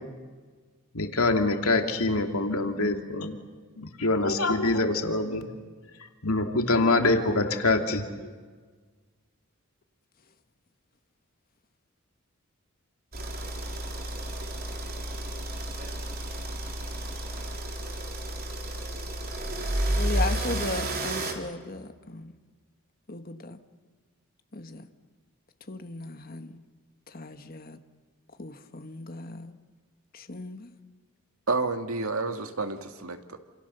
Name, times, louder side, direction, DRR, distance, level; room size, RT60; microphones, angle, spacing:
voice 1, 0.9-3.4 3.8-5.5 6.2-8.3, left 2 dB, 85° left, 4 dB, 2.6 m, -25 dB
sound 1, 13.1-21.3, right 1 dB, 45° right, 3.6 m, -31 dB
voice 2, 20.0-22.3 23.1-23.6 24.5-24.9 25.7-26.6 27.1-27.8 28.4-29.6 30.1-30.7, left 2 dB, 40° left, 7 dB, 1.6 m, -37 dB
voice 3, 31.5-33.4, right 3 dB, 80° right, 6 dB, 2.1 m, -30 dB
28.5 x 27.5 x 6.9 m, 1.5 s
head